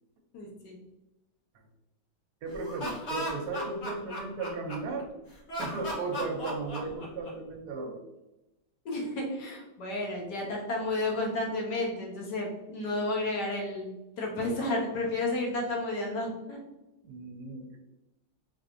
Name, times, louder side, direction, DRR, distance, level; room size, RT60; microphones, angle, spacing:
voice 1, 0.3-0.8 8.8-16.6, left 2 dB, 70° left, -1 dB, 1.5 m, -32 dB
voice 2, 2.4-5.1 5.6-8.0 17.0-17.8, right 3 dB, 70° right, 3 dB, 1.1 m, -36 dB
Laughter, 2.5-5.0 5.5-7.5, equal, 45° left, 1.1 m, -36 dB
3.7 x 3.4 x 2.5 m, 0.97 s
omnidirectional pair, 2.0 m